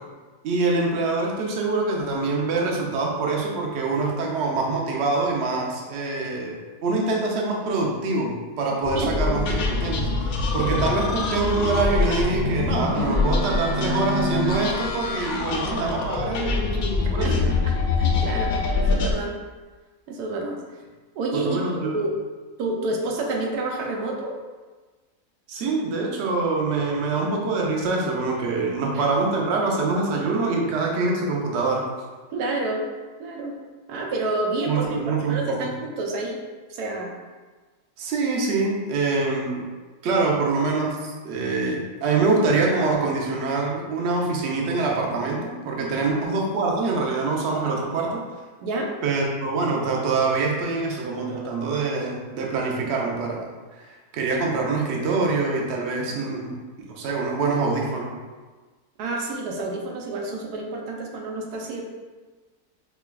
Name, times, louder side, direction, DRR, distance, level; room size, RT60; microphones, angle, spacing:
voice 1, 0.4-17.5 21.3-22.0 25.5-31.9 34.7-35.7 38.0-39.7 40.0-48.2 49.0-53.5 53.7-56.6 57.0-58.2, right 3 dB, 60° right, -1 dB, 0.7 m, -25 dB
sound 1, 8.8-19.1, left 3 dB, 70° left, 0.9 m, -24 dB
voice 2, 17.2-19.3 20.1-20.6 21.1-21.6 21.9-22.1 22.6-24.4 28.9-29.1 32.3-32.9 33.2-33.6 33.9-34.9 35.3-36.4 36.7-37.1 45.9-46.0 48.6-48.9 56.1-56.4 59.0-61.8, right 2 dB, 90° right, 0 dB, 1.2 m, -29 dB
5.6 x 2.2 x 2.2 m, 1.3 s
omnidirectional pair, 1.6 m